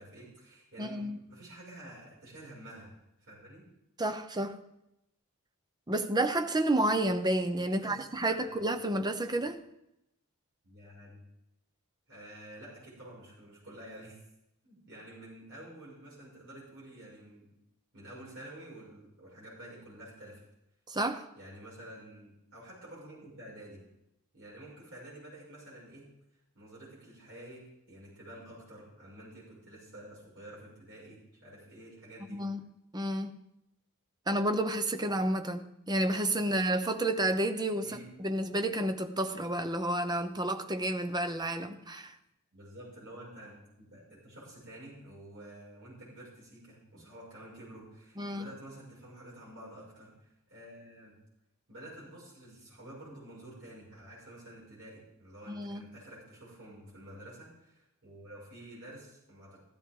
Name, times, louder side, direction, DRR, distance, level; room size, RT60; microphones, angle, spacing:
voice 1, 0.0-2.9 3.2-3.6 7.7-8.0 8.3-8.7 10.6-11.2 12.1-14.2 14.6-17.5 17.9-20.4 21.4-23.8 24.3-26.1 26.5-32.4 36.5-36.6 37.8-38.1 42.5-51.1 51.7-59.6, right 1 dB, 60° right, 6.3 m, -50 dB
voice 2, 0.8-1.2 4.0-4.6 5.9-9.6 20.9-21.3 32.3-32.7 32.9-33.4 34.3-42.2 48.2-48.5 55.5-55.8, right 1 dB, 20° right, 0.8 m, -30 dB
15.5 x 12.5 x 3.8 m
head